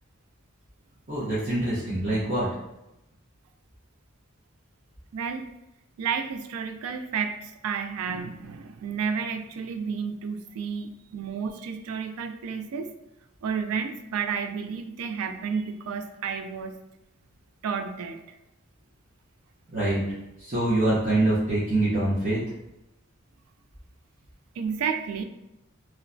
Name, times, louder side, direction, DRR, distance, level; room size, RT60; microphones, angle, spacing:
voice 1, 1.1-2.5 19.7-20.0 20.4-22.4, right 1 dB, 35° right, -12 dB, 0.7 m, -24 dB
voice 2, 5.1-5.5 6.0-12.9 13.4-16.8 17.6-18.2 24.6-25.2, right 6 dB, 85° right, 8 dB, 0.3 m, -31 dB
3.0 x 2.1 x 2.5 m, 0.90 s
head